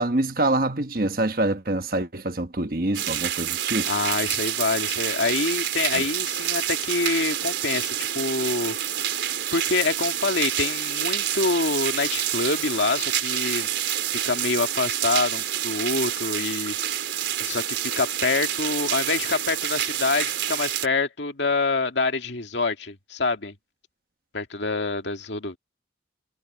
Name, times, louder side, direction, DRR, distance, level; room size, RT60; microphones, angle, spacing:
voice 1, 0.0-3.9 5.9-6.0, right 2 dB, 50° right, 1.3 m, -25 dB
sound 1, 2.9-20.9, right 11 dB, 85° right, 3.8 m, -28 dB
voice 2, 3.9-8.8 9.5-13.7 14.1-16.8 17.4-17.6 18.0-23.5 24.3-25.6, left 3 dB, 80° left, 2.1 m, -26 dB
head